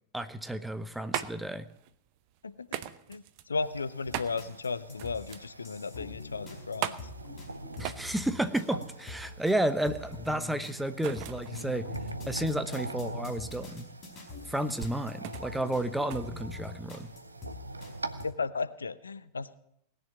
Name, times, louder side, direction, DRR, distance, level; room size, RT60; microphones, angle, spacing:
voice 1, 0.1-1.7 7.8-11.9 12.3-13.9 14.5-17.1, right 1 dB, 5° right, 10 dB, 0.9 m, -32 dB
sound 1, 0.6-17.2, right 12 dB, 45° right, 0.8 m, -42 dB
voice 2, 3.1-7.1 18.2-19.6, left 4 dB, 75° left, 15 dB, 0.6 m, -35 dB
sound 2, 3.6-18.3, right 2 dB, 80° right, 0.8 m, -44 dB
sound 3, 4.1-17.9 18.2-18.3, left 3 dB, 30° left, 4.7 m, -46 dB
18.5 x 6.8 x 9.2 m, 0.75 s
figure-of-eight pair, 90°, 0 cm